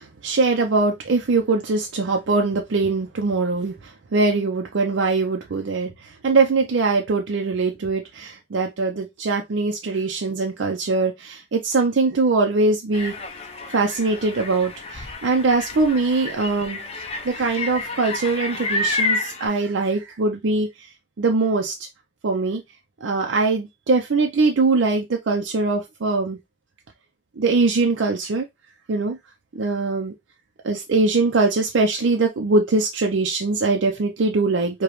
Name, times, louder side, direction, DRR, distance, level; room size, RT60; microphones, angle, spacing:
voice 1, 0.0-13.2 13.7-16.8 17.2-20.9 21.2-21.7 22.2-22.6 23.0-26.4 27.4-28.5 28.9-29.2 29.5-30.1 30.6-34.8, right 3 dB, 80° right, 0.5 m, -22 dB
sound 1, 12.9-19.5, left 3 dB, 30° left, 0.6 m, -29 dB
4.9 x 2.2 x 3.0 m
head